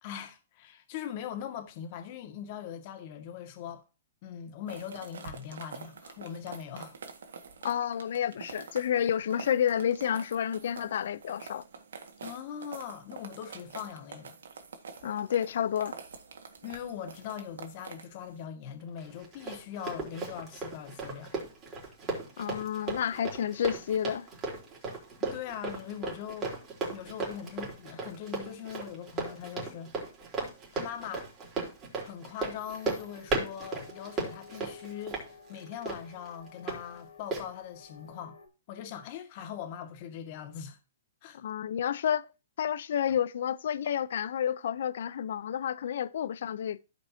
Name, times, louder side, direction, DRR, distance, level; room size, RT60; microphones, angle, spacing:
voice 1, 0.0-3.8 4.2-7.0 12.2-14.4 16.6-21.3 25.2-26.5 26.9-29.9 30.7-31.3 32.0-38.4 38.7-40.8 41.2-41.4, left 9 dB, 45° left, 2.1 m, -41 dB
sound 1, 4.7-18.4, right 5 dB, 80° right, 1.8 m, -47 dB
voice 2, 7.6-11.6 15.0-16.0 22.4-24.3 41.3-42.3 42.6-46.8, left 9 dB, 70° left, 0.7 m, -30 dB
Run, 19.0-36.8 37.3-37.4, right 3 dB, 25° right, 3.9 m, -36 dB
sound 2, 32.6-38.5, left 5 dB, 85° left, 2.4 m, -52 dB
15.5 x 5.3 x 2.8 m
hypercardioid pair, 140°, 0 cm